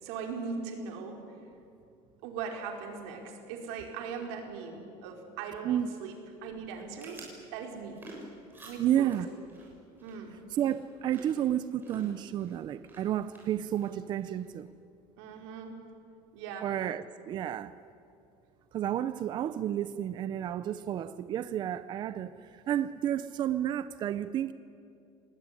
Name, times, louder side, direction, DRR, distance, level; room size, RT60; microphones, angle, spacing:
voice 1, 0.0-1.2 2.2-6.1 6.4-7.2 7.5-8.0 8.6-9.1 10.0-10.4 15.2-15.8 16.3-16.7, right 5 dB, 90° right, 2 dB, 4.7 m, -39 dB
sound 1, 6.7-14.6, right 2 dB, 15° right, 6.5 m, -52 dB
voice 2, 8.8-9.3 10.5-14.7 16.6-17.8 18.7-24.5, right 11 dB, 35° right, 13 dB, 0.6 m, -31 dB
26.0 x 19.5 x 9.9 m, 2.5 s
cardioid pair, 160°, 13 cm